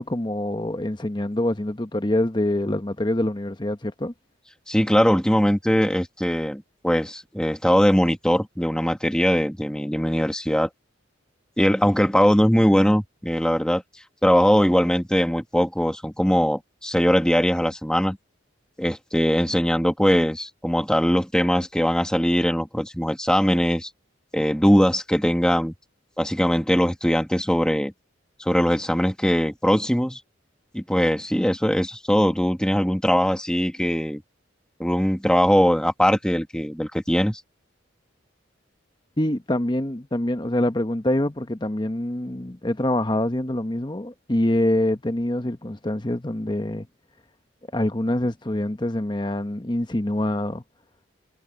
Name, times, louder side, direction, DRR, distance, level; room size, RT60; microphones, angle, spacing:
voice 1, 0.0-4.1 39.2-46.9 47.7-50.6, left 1 dB, 20° left, 1.0 m, -25 dB
voice 2, 4.7-10.7 11.6-13.8 14.2-18.2 18.8-23.9 24.3-25.7 26.2-27.9 28.4-30.2 30.7-34.2 34.8-37.4, equal, 5° left, 1.7 m, -21 dB
head